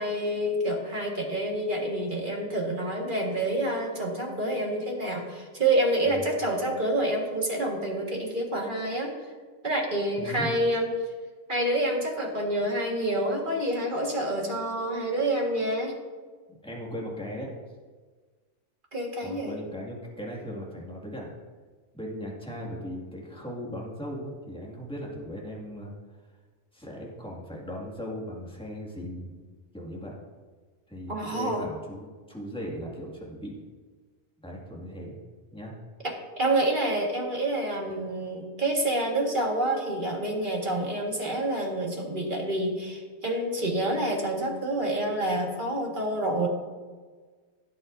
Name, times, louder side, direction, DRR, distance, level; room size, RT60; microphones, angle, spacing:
voice 1, 0.0-9.1 9.6-10.9 11.5-15.9 18.9-19.6 31.1-31.6 36.0-46.5, right 1 dB, 40° right, 0 dB, 1.9 m, -28 dB
voice 2, 10.2-10.5 16.6-17.5 19.2-21.3 21.9-25.9 26.7-29.5 29.7-30.1 30.9-33.6 34.4-35.1 35.5-35.7, equal, 5° left, -3 dB, 2.1 m, -38 dB
16.5 x 8.1 x 2.7 m, 1.4 s
omnidirectional pair, 1.4 m